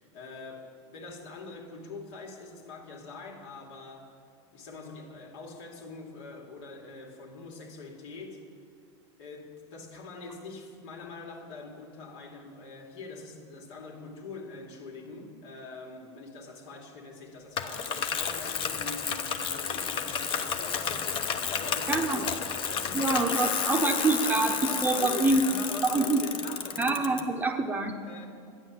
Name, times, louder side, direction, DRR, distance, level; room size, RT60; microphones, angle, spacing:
voice 1, 0.0-4.1 4.5-8.4 9.2-24.4 24.7-26.9 28.0-28.3, left 3 dB, 70° left, 1 dB, 2.7 m, -43 dB
Bicycle, 17.6-27.2, left 7 dB, 35° left, 0.9 m, -31 dB
voice 2, 21.9-22.2 22.9-25.4 25.8-26.2 26.8-27.9, right 3 dB, 10° right, 4 dB, 0.8 m, -26 dB
12.0 x 9.9 x 7.5 m, 2.2 s
supercardioid pair, 140°, 16 cm